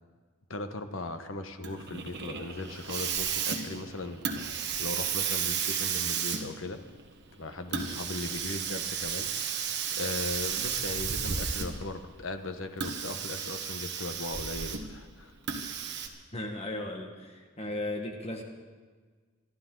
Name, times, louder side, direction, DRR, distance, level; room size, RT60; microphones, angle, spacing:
voice 1, 0.5-4.2 4.8-6.8 7.4-9.7 10.0-15.3, left 2 dB, 60° left, 7 dB, 1.1 m, -38 dB
Hiss, 1.6-12.0 12.7-15.0 15.5-16.1, right 7 dB, 50° right, 1.4 m, -33 dB
voice 2, 16.3-18.4, left 1 dB, 30° left, 2 dB, 1.6 m, -36 dB
26.5 x 11.5 x 3.9 m, 1.5 s
head